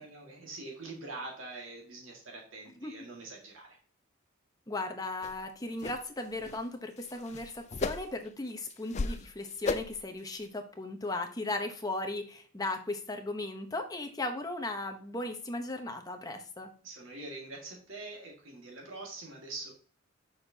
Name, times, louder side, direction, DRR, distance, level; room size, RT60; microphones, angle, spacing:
voice 1, 0.0-3.8 16.8-19.7, right 2 dB, 80° right, -1 dB, 1.9 m, -44 dB
voice 2, 4.7-16.7, left 2 dB, 20° left, 5 dB, 0.9 m, -37 dB
sound 1, 5.2-5.3 5.8-6.0 6.3-6.6 7.0-8.3 8.7-9.2 9.6-10.0 10.4-10.5, left 3 dB, 35° left, 0.4 m, -35 dB
7.2 x 6.4 x 2.8 m, 0.42 s
head